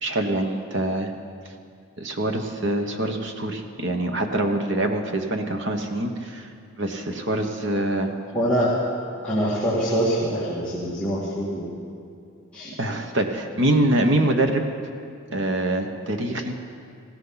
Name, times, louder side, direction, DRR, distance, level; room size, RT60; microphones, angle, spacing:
voice 1, 0.0-1.1 2.0-6.5 6.8-8.1 12.8-14.6 15.3-16.5, right 1 dB, 55° right, 4 dB, 1.2 m, -24 dB
voice 2, 8.3-8.8 9.2-11.7 12.5-12.7, equal, 5° left, -10 dB, 2.4 m, -24 dB
19.5 x 16.0 x 4.1 m, 2.4 s
head